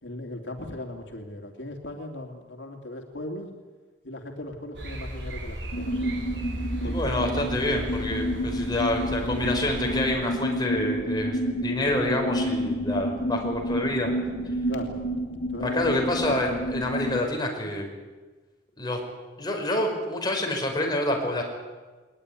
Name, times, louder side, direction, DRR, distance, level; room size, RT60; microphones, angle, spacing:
voice 1, 0.0-3.5 4.0-6.2 6.8-7.3 14.7-15.0 15.5-16.1, left 1 dB, 80° left, 2 dB, 2.8 m, -38 dB
sound 1, 4.7-10.1, right 1 dB, 65° right, 7.2 m, -35 dB
sound 2, 5.7-17.2, equal, 60° left, 5.1 m, -29 dB
voice 2, 6.8-14.1 15.6-17.9 18.8-19.0 19.4-21.4, left 1 dB, 25° left, 1 dB, 5.3 m, -27 dB
21.5 x 20.0 x 10.0 m, 1.3 s
head